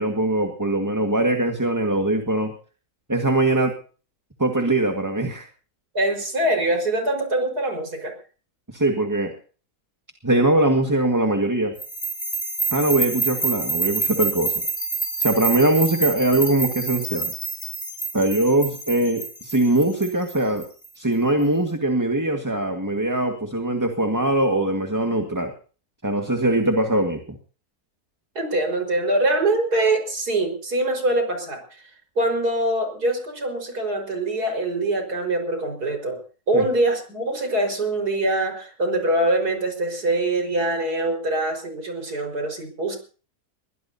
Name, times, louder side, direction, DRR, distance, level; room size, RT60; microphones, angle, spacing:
voice 1, 0.0-2.5 3.1-3.8 4.4-5.5 8.7-9.4 10.2-11.7 12.7-14.6 15.2-17.3 18.1-20.7 21.0-25.5 26.0-27.4 36.5-36.6, right 1 dB, 10° right, 4 dB, 1.7 m, -21 dB
voice 2, 5.9-8.2 28.4-31.8 32.2-36.2 36.5-43.0, right 1 dB, 85° right, 4 dB, 5.6 m, -23 dB
sound 1, 11.8-20.9, right 3 dB, 30° left, 5.2 m, -28 dB
21.5 x 21.5 x 2.8 m, 0.39 s
omnidirectional pair, 1.6 m